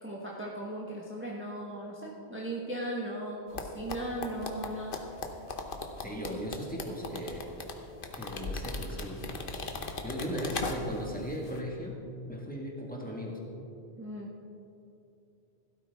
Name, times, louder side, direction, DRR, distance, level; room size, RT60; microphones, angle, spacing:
voice 1, 0.0-5.0 14.0-14.3, right 1 dB, 10° right, -4 dB, 1.3 m, -37 dB
sound 1, 3.5-11.1 11.4-11.6, left 3 dB, 55° left, 1.1 m, -38 dB
voice 2, 6.0-7.5 8.1-9.3 9.9-12.0 12.3-13.4, equal, 10° left, -3 dB, 1.7 m, -37 dB
16.0 x 13.0 x 3.6 m, 2.8 s
omnidirectional pair, 1.1 m